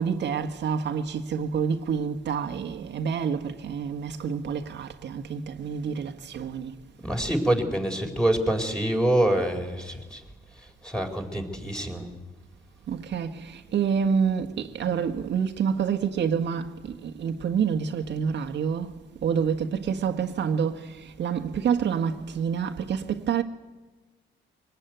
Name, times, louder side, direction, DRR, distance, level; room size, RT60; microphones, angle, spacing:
voice 1, 0.0-6.8 12.9-23.4, right 7 dB, 60° right, 1.5 m, -28 dB
voice 2, 7.0-10.2 10.8-12.1, right 1 dB, 5° left, 4.3 m, -25 dB
24.5 x 19.0 x 9.2 m
cardioid pair, 90°, 20 cm